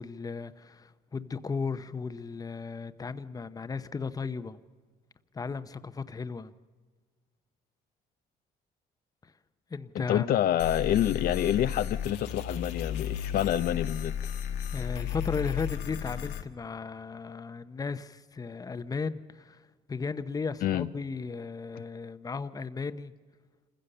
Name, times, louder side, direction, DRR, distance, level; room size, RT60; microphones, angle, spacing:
voice 1, 0.0-4.6 5.3-6.5 9.2-9.3 9.7-10.4 14.7-23.1, left 4 dB, 20° left, 0.8 m, -35 dB
voice 2, 9.9-14.3 20.6-20.9, left 11 dB, 60° left, 0.6 m, -27 dB
sound 1, 10.6-16.4, left 9 dB, 90° left, 1.5 m, -34 dB
27.0 x 15.5 x 6.7 m
cardioid pair, 110°, 17 cm